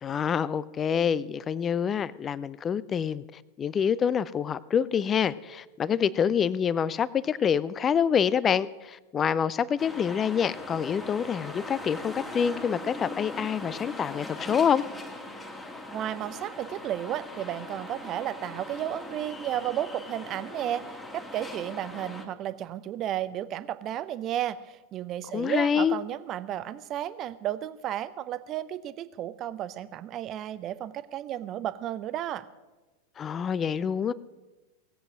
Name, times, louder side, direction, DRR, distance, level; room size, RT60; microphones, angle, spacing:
voice 1, 0.0-14.8 25.3-26.0 33.2-34.1, left 7 dB, 25° left, 20 dB, 0.4 m, -26 dB
sound 1, 9.8-22.3, left 1 dB, 10° left, 1.8 m, -40 dB
voice 2, 15.9-20.8 21.1-32.5, right 11 dB, 35° right, 15 dB, 0.6 m, -33 dB
18.0 x 7.9 x 6.3 m, 1.2 s
figure-of-eight pair, 90°, 0 cm